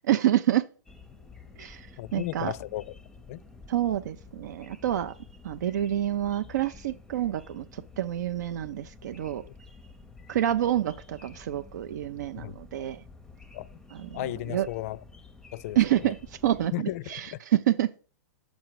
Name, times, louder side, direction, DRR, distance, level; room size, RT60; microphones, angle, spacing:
voice 1, 0.1-0.6 1.6-1.9 2.1-2.5 3.7-5.1 5.4-9.4 10.3-13.0 14.0-14.1 14.5-14.7 15.8-17.9, right 12 dB, 75° right, 0.4 m, -27 dB
sound 1, 0.8-16.7, left 4 dB, 5° left, 0.6 m, -50 dB
voice 2, 2.0-2.9 3.3-3.4 9.5-9.6 12.4-12.5 13.5-13.7 14.1-15.0 15.5-16.1 16.7-17.4, left 16 dB, 50° left, 0.4 m, -35 dB
6.3 x 5.1 x 4.7 m
hypercardioid pair, 130°, 10 cm